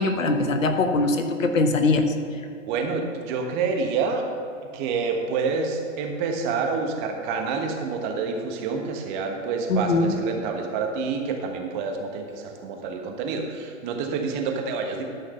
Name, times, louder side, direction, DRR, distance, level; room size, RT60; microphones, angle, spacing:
voice 1, 0.0-2.1 9.7-10.1, left 2 dB, 75° left, 7 dB, 1.1 m, -22 dB
voice 2, 2.7-4.3 4.7-15.0, right 4 dB, 35° right, 3 dB, 1.4 m, -28 dB
12.5 x 5.7 x 5.6 m, 2.4 s
figure-of-eight pair, 115°, 39 cm